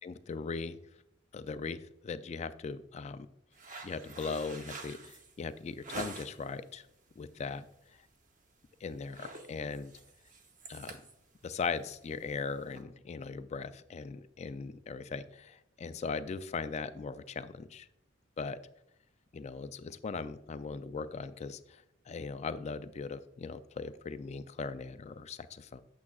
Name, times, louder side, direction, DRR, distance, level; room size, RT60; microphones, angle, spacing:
voice 1, 0.0-0.8 1.3-3.3 3.8-6.9 7.2-7.6 8.8-9.9 10.7-11.0 11.4-17.9 18.4-18.6 19.3-25.8, left 4 dB, 35° left, 13 dB, 0.3 m, -39 dB
sound 1, 3.5-6.5 7.0-7.4 7.7-7.9 8.2-8.6 8.9-12.8, right 3 dB, 40° right, 0.8 m, -47 dB
8.4 x 7.2 x 2.3 m, 0.81 s
head